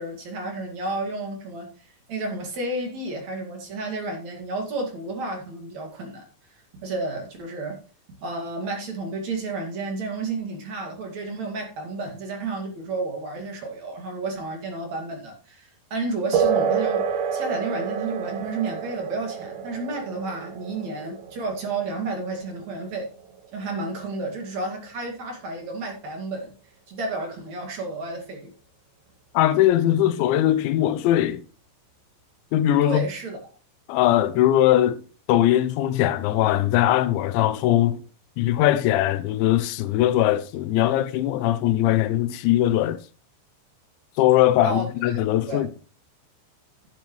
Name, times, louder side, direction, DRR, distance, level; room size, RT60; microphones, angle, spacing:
voice 1, 0.0-1.7 2.1-6.2 6.8-7.8 8.2-23.1 23.5-26.5 26.9-28.5 32.8-33.5 44.6-45.2 45.5-45.7, right 2 dB, 45° right, 2.9 m, -31 dB
sound 1, 16.3-24.3, right 7 dB, 65° right, 2.7 m, -29 dB
voice 2, 29.3-31.4 32.5-33.0 33.9-35.0 35.3-38.0 38.4-43.0 44.2-45.7, left 13 dB, 85° left, 3.0 m, -20 dB
11.0 x 10.5 x 3.1 m
omnidirectional pair, 5.2 m